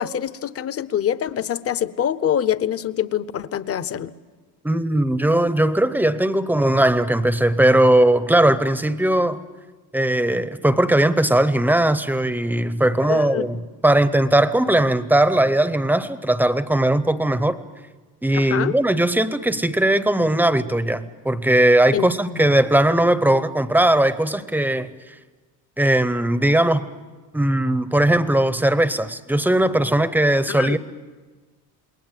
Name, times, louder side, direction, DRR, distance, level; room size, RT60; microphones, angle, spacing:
voice 1, 0.0-4.1 13.1-13.5 18.3-18.7 21.9-22.5 30.5-30.8, left 9 dB, 35° left, 15 dB, 0.8 m, -25 dB
voice 2, 4.6-9.4 9.9-17.6 18.2-24.9 25.8-26.8 27.3-30.8, right 1 dB, 5° right, 13 dB, 0.7 m, -19 dB
28.0 x 22.0 x 7.5 m, 1.3 s
cardioid pair, 160°, 40 cm